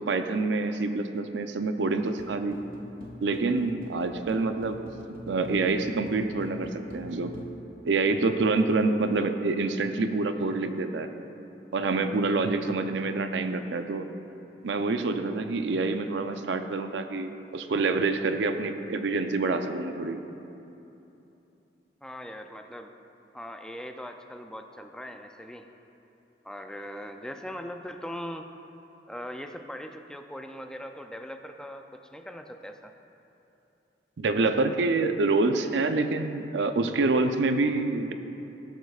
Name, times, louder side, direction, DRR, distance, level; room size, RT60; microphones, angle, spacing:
voice 1, 0.0-2.6 3.2-4.8 5.3-7.3 7.8-11.1 11.7-14.1 14.6-20.2 34.2-38.1, right 3 dB, 90° right, 8 dB, 0.5 m, -27 dB
sound 1, 2.2-7.5, equal, 55° right, 1.0 m, -44 dB
voice 2, 22.0-22.9 23.3-25.7 26.4-28.5 29.1-32.9, equal, 5° left, 5 dB, 0.3 m, -40 dB
15.5 x 8.1 x 2.4 m, 2.9 s
head